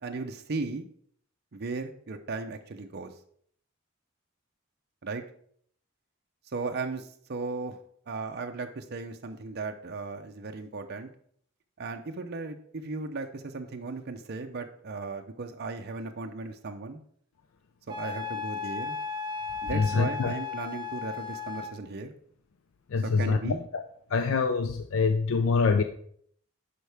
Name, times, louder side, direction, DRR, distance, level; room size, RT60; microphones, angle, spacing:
voice 1, 0.0-0.9 1.5-3.1 5.0-5.2 6.5-7.8 8.1-11.1 11.8-17.0 17.9-19.0 19.6-22.1 23.0-23.6, right 3 dB, 55° right, 5 dB, 0.6 m, -36 dB
Wind instrument woodwind instrument, 17.9-21.8, left 5 dB, 20° right, 0.8 m, -35 dB
voice 2, 19.7-20.3 22.9-23.8 24.1-25.8, left 4 dB, 75° left, 7 dB, 0.5 m, -25 dB
11.0 x 4.6 x 3.4 m, 0.63 s
head